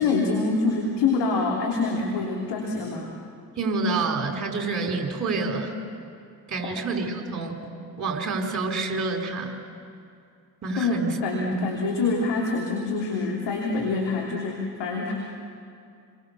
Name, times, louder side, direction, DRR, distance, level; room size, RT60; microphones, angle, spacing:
voice 1, 0.0-3.1 6.6-6.7 10.7-15.1, left 3 dB, 55° left, -1 dB, 3.3 m, -26 dB
voice 2, 3.6-5.7 6.5-7.6 8.0-9.6 10.6-11.1 11.5-11.7, right 3 dB, 35° right, 2 dB, 4.4 m, -28 dB
29.5 x 22.5 x 6.9 m, 2.4 s
figure-of-eight pair, 50°, 49 cm